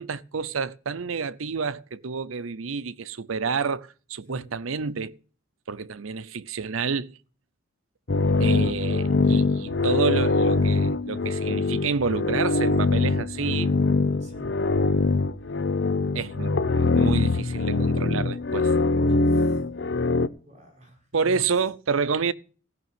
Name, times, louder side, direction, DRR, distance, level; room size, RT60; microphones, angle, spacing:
voice 1, 0.0-5.2 5.7-7.2 8.4-13.7 16.1-18.7 21.1-22.3, right 5 dB, 90° right, 0.7 m, -29 dB
sound 1, 8.1-20.3, left 3 dB, 55° left, 0.7 m, -23 dB
voice 2, 14.2-14.6 19.3-19.6 20.4-21.4, equal, 35° right, 5.2 m, -45 dB
16.0 x 6.1 x 9.2 m
head